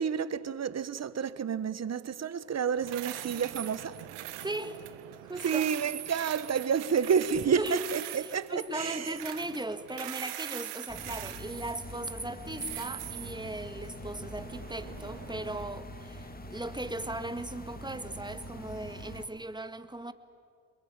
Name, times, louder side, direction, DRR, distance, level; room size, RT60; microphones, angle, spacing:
voice 1, 0.0-4.0 5.4-9.2, right 7 dB, 35° right, 1.3 m, -30 dB
sound 1, 2.8-15.6, right 15 dB, 80° right, 1.6 m, -43 dB
voice 2, 4.4-4.8 5.2-5.7 7.6-20.1, right 2 dB, 10° right, 1.9 m, -38 dB
sound 2, 10.9-19.3, left 1 dB, 20° left, 2.4 m, -44 dB
28.0 x 22.0 x 8.9 m
supercardioid pair, 70°, 42 cm